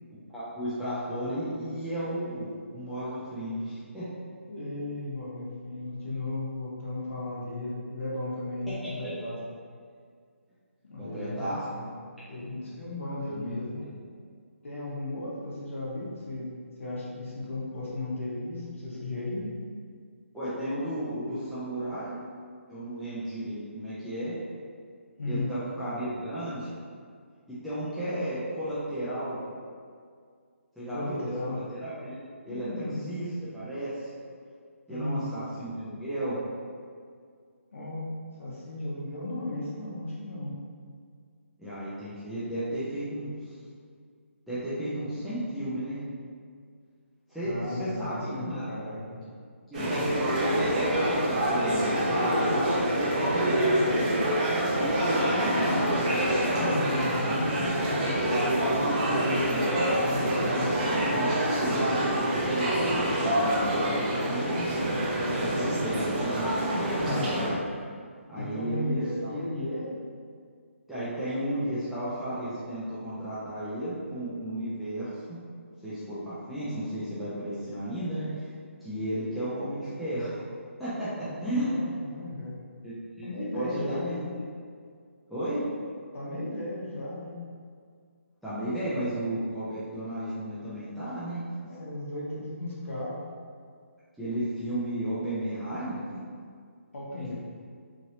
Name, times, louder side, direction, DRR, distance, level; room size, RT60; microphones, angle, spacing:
voice 1, 0.3-4.2 8.7-9.1 11.0-11.7 12.6-12.7 13.3-13.9 20.3-22.2 22.7-24.4 25.3-26.7 27.6-29.4 30.8-32.2 32.5-34.1 34.9-36.4 41.6-43.5 44.5-46.0 47.3-48.7 49.7-52.4 55.2-56.2 57.2-57.4 60.7-64.9 65.3-67.6 68.3-69.3 70.9-75.4 75.8-78.5 78.8-80.4 80.8-81.7 82.8-83.3 83.5-84.2 85.3-85.7 88.4-91.4 94.2-96.2, right 1 dB, ahead, -14 dB, 0.4 m, -34 dB
voice 2, 4.5-9.4 10.9-11.8 12.3-13.8 14.6-16.5 16.8-19.4 25.2-25.5 30.9-31.6 32.4-33.2 34.9-35.3 37.7-38.1 38.4-40.6 47.4-49.2 53.5-54.1 55.2-56.1 56.4-60.7 67.0-67.3 68.4-69.9 81.2-82.5 83.2-84.2 86.1-87.4 91.6-93.2 96.9-97.3, left 1 dB, 65° left, -6 dB, 1.1 m, -35 dB
sound 1, 49.7-67.5, right 1 dB, 35° right, 0.7 m, -26 dB
3.1 x 2.6 x 2.8 m, 2.1 s
hypercardioid pair, 160°, 7 cm